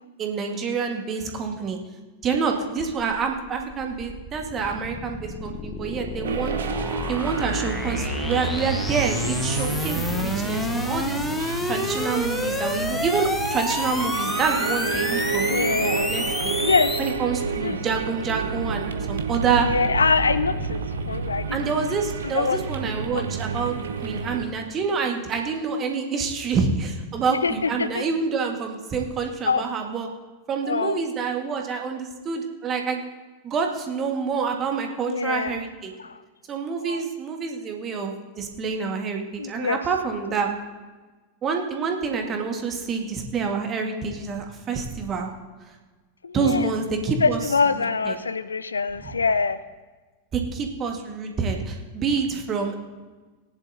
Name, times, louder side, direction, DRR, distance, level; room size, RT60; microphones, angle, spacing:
voice 1, 0.2-1.8 2.2-6.6 7.1-11.2 11.6-16.5 17.0-19.7 21.5-30.1 30.5-33.0 33.4-35.9 36.5-40.5 41.4-45.3 46.3-47.4 48.0-48.1 49.0-49.1 50.3-52.7, right 5 dB, 25° right, 3 dB, 1.6 m, -27 dB
sound 1, 3.0-17.1, left 2 dB, 10° left, 0.9 m, -29 dB
sound 2, 6.2-24.4, right 4 dB, 65° right, 0.9 m, -30 dB
voice 2, 15.5-16.2 16.6-17.0 17.6-17.8 19.6-21.8 22.2-22.6 23.1-23.2 27.3-28.0 29.4-29.6 30.6-31.0 35.1-35.6 36.0-36.2 36.8-37.0 39.4-39.8 46.2-46.7 47.2-49.6, left 4 dB, 75° left, 15 dB, 0.4 m, -24 dB
19.0 x 10.5 x 2.7 m, 1.3 s
figure-of-eight pair, 90°, 0 cm